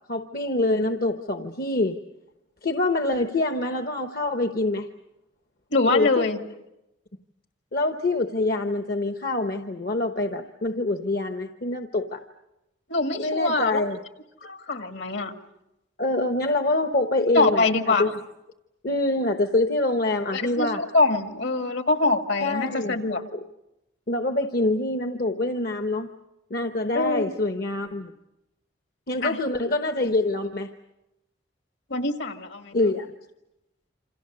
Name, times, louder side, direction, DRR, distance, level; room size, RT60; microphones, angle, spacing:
voice 1, 0.1-1.9 2.6-4.9 5.9-6.2 7.7-12.2 13.2-14.0 16.0-18.2 18.8-20.8 22.4-23.0 23.3-23.4 24.1-26.1 26.5-28.1 29.1-30.7 32.7-33.1, left 2 dB, 50° left, 7 dB, 1.0 m, -25 dB
voice 2, 5.7-6.4 12.9-13.8 14.4-15.3 17.3-18.1 20.3-23.2 26.9-27.3 29.2-29.4 31.9-32.8, left 3 dB, 65° left, 6 dB, 2.0 m, -24 dB
28.0 x 27.0 x 6.8 m, 0.92 s
head